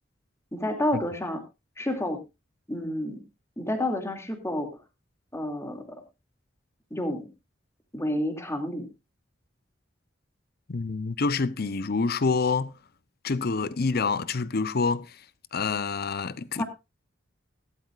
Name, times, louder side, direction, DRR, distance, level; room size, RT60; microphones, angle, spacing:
voice 1, 0.5-1.4 1.8-2.2 2.7-3.2 3.6-4.7 5.3-6.0 6.9-7.3 7.9-8.9 16.6-16.7, left 1 dB, 15° left, 2.5 m, -29 dB
voice 2, 10.7-12.8 13.2-15.2 15.5-16.6, left 4 dB, 55° left, 0.7 m, -27 dB
16.0 x 12.5 x 2.5 m
head